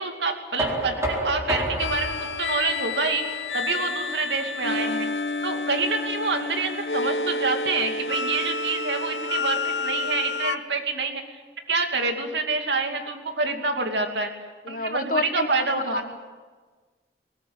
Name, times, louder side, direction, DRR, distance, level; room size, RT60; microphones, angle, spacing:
voice 1, 0.0-3.2 3.5-5.1 5.4-11.2 11.7-14.3 14.7-16.0, right 3 dB, 80° right, 4 dB, 2.7 m, -27 dB
Knock, 0.6-6.4, right 1 dB, 15° right, 4.1 m, -32 dB
sound 1, 1.8-10.6, left 3 dB, 80° left, 1.0 m, -29 dB
voice 2, 14.7-15.7 15.9-16.2, left 3 dB, 50° left, 10 dB, 1.3 m, -29 dB
21.5 x 19.0 x 9.0 m, 1.4 s
head